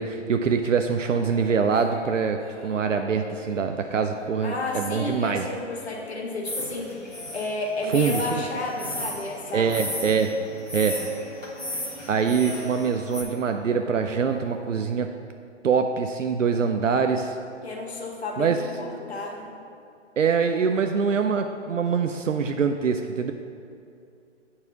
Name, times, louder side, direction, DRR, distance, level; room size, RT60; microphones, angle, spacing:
voice 1, 0.0-5.5 7.9-8.4 9.5-10.3 10.7-11.0 12.1-15.1 15.6-17.4 18.4-18.6 20.2-23.3, right 6 dB, 80° right, 6 dB, 0.5 m, -24 dB
Singing, 1.0-8.9 9.2-15.1, equal, 10° left, 0.4 m, -43 dB
voice 2, 4.4-9.8 17.6-19.6, left 2 dB, 55° left, 0 dB, 1.5 m, -32 dB
sound 1, 6.4-13.2, left 1 dB, 90° left, 1.8 m, -35 dB
8.4 x 4.8 x 6.0 m, 2.6 s
figure-of-eight pair, 130°, 37 cm